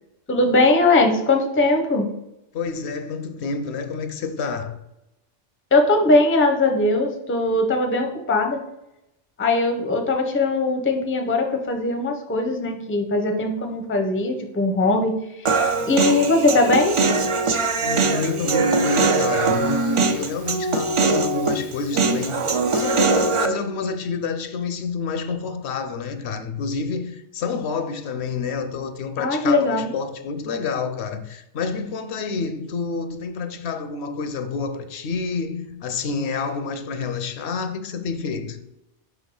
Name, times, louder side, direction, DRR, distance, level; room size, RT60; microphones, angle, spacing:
voice 1, 0.3-2.1 5.7-8.6 9.4-17.0 29.2-29.9, left 2 dB, 15° left, 0.5 m, -20 dB
voice 2, 2.5-4.8 17.8-38.6, left 4 dB, 70° left, 0.8 m, -28 dB
Human voice, 15.5-23.5, right 3 dB, 55° right, 0.3 m, -21 dB
5.2 x 3.5 x 5.3 m
omnidirectional pair, 1.2 m